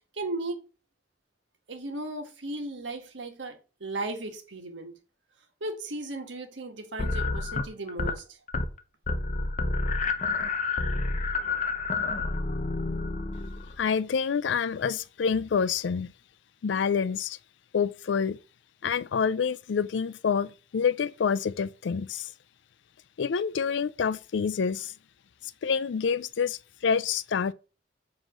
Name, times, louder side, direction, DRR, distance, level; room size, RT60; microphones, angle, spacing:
voice 1, 0.2-0.6 1.7-4.9 5.6-8.2, right 2 dB, 90° right, 1.6 m, -36 dB
sound 1, 7.0-8.2 8.5-8.8 9.1-13.8, left 3 dB, 40° left, 0.7 m, -29 dB
voice 2, 13.8-16.1 16.6-17.4 17.7-18.4 18.8-22.3 23.2-24.9 25.6-27.5, left 6 dB, 80° left, 0.4 m, -27 dB
7.6 x 3.1 x 6.1 m
head